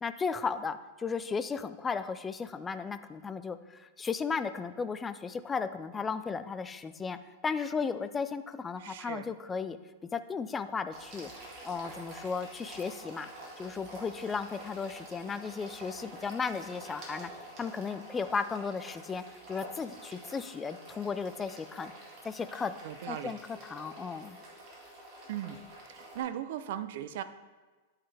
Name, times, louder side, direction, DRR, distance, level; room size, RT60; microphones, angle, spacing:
voice 1, 0.0-9.8 10.1-11.3 11.6-13.3 13.6-17.3 17.6-21.9 22.2-22.8 23.1-24.4, left 5 dB, 10° left, 11 dB, 0.3 m, -35 dB
voice 2, 8.8-9.3 22.8-23.4 25.3-25.6 25.9-27.2, right 11 dB, 55° right, 13 dB, 0.5 m, -38 dB
sound 1, 10.9-26.2, right 1 dB, 35° right, 2.1 m, -48 dB
10.5 x 5.5 x 3.4 m, 1.3 s
supercardioid pair, 160°, 0 cm